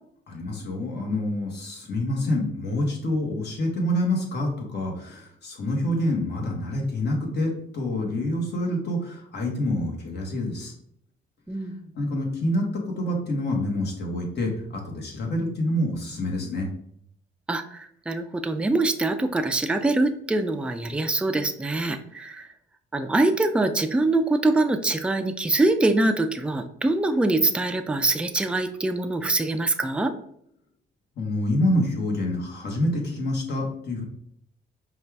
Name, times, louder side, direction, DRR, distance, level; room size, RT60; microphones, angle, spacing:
voice 1, 0.3-10.7 12.0-16.7 31.2-34.0, left 1 dB, 60° left, 0 dB, 1.4 m, -27 dB
voice 2, 17.5-22.5 22.9-30.1, right 2 dB, 5° right, 7 dB, 0.4 m, -24 dB
5.2 x 2.4 x 3.4 m, 0.70 s
cardioid pair, 90°, 20 cm